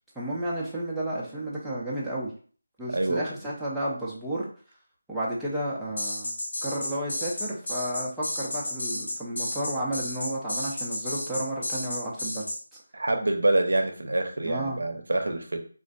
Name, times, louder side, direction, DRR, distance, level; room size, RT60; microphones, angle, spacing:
voice 1, 0.2-2.3 2.8-4.5 5.1-6.3 6.6-12.5 14.4-14.8, right 1 dB, ahead, -10 dB, 0.3 m, -32 dB
voice 2, 2.9-3.2 12.9-15.6, right 2 dB, 80° right, 5 dB, 0.5 m, -26 dB
sound 1, 6.0-12.6, left 1 dB, 55° left, 0.7 m, -32 dB
2.4 x 2.1 x 2.5 m, 0.43 s
figure-of-eight pair, 175°, 0 cm